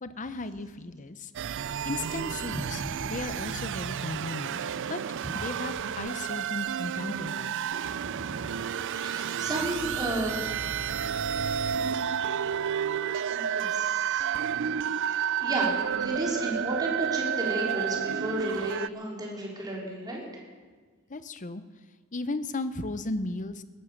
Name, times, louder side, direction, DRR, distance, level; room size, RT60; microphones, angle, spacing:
voice 1, 0.0-1.3 1.8-4.6 4.9-5.0 5.3-7.5 21.1-21.6 22.1-23.6, left 2 dB, 35° left, 13 dB, 0.8 m, -35 dB
sound 1, 1.3-18.9, right 8 dB, 55° right, 0.4 m, -31 dB
voice 2, 7.8-8.3 8.9-10.6 13.3-14.3 15.1-15.7 16.0-20.4, right 1 dB, 20° right, -3 dB, 4.1 m, -33 dB
18.0 x 11.0 x 7.2 m, 1.5 s
head